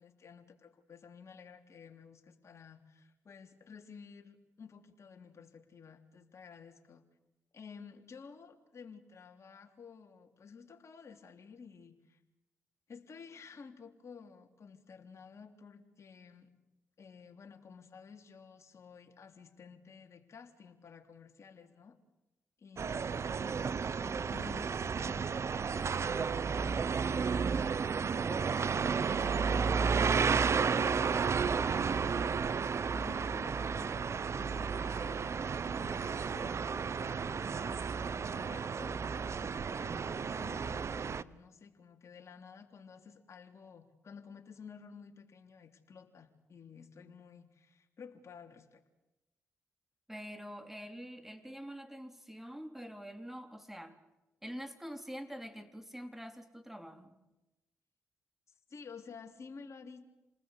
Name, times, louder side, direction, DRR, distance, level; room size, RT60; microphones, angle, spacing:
voice 1, 0.0-7.0 7.5-12.2 12.9-16.5 17.0-22.0 22.6-23.4 23.7-24.8 25.0-27.5 28.2-31.1 31.5-32.3 32.9-35.3 35.7-36.6 36.8-48.8 58.7-60.1, left 6 dB, 55° left, 3 dB, 3.4 m, -53 dB
sound 1, 22.8-41.2, right 5 dB, 50° right, 0.9 m, -32 dB
voice 2, 50.1-54.0 54.4-57.2, equal, 5° right, 7 dB, 3.8 m, -45 dB
28.5 x 19.5 x 8.3 m, 0.99 s
hypercardioid pair, 45°, 6 cm